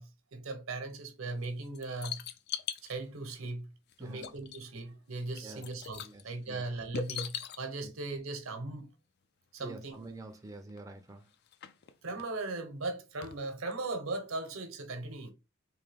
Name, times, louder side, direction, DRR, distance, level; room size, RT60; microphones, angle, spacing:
voice 1, 0.0-2.2 2.8-3.7 4.0-8.9 9.5-10.0 12.0-15.3, right 2 dB, 80° right, 0.9 m, -38 dB
sound 1, 1.4-2.9 3.9-4.0 4.2-4.8 5.1-6.2 6.9-7.6 9.6-9.7 9.9-10.0 10.7-10.8 11.3-12.2 13.2-13.4 13.7-13.8, left 8 dB, 55° left, 0.4 m, -40 dB
voice 2, 6.0-6.6 7.8-7.9 9.6-11.2, right 2 dB, 15° right, 0.4 m, -47 dB
3.5 x 2.7 x 3.4 m
head